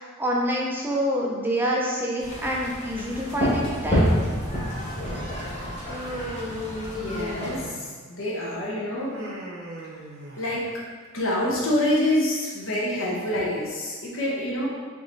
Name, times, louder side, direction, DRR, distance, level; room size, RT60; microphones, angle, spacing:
voice 1, 0.0-4.1, equal, 10° right, -3 dB, 0.5 m, -27 dB
sound 1, 2.2-7.6, equal, 35° left, 1.5 m, -28 dB
Human voice, 5.8-8.0 8.9-10.8, left 1 dB, 70° right, 1.0 m, -36 dB
voice 2, 6.9-7.7 8.2-9.1 10.4-10.6 11.1-14.7, left 1 dB, 70° left, -4 dB, 1.1 m, -26 dB
3.9 x 3.0 x 3.9 m, 1.5 s
head